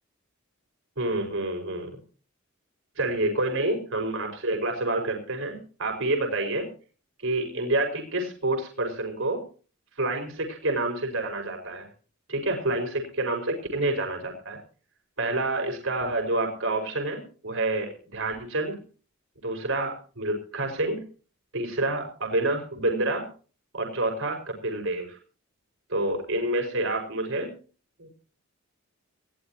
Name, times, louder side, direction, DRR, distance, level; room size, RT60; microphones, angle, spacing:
voice 1, 1.0-1.9 3.0-6.7 7.2-9.4 10.0-11.9 12.3-14.6 15.2-18.8 19.4-21.0 21.5-23.2 23.7-25.2 25.9-27.5 28.0-28.1, right 2 dB, 70° right, 3 dB, 5.2 m, -28 dB
20.5 x 16.5 x 3.0 m, 0.39 s
head